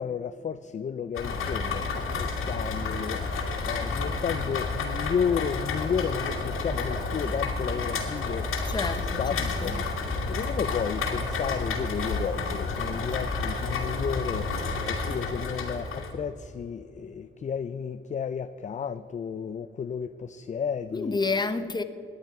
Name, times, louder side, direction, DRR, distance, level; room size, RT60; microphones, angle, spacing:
voice 1, 0.0-8.5 9.0-9.8 10.3-21.2, left 7 dB, 35° left, 0.4 m, -32 dB
Rain, 1.1-16.1, left 3 dB, 85° left, 2.3 m, -30 dB
voice 2, 8.7-9.8 20.9-21.8, left 3 dB, 20° left, 0.9 m, -30 dB
19.0 x 10.5 x 4.7 m
cardioid pair, 105°, 21 cm